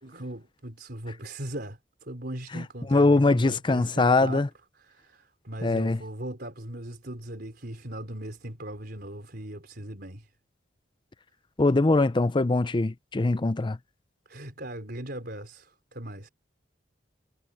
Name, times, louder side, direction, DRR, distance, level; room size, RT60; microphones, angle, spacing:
voice 1, 0.0-4.4 4.8-10.3 14.3-16.3, right 1 dB, 60° right, 4.5 m, -39 dB
voice 2, 2.9-4.5 5.6-6.0 11.6-13.8, left 2 dB, 25° left, 0.5 m, -22 dB
head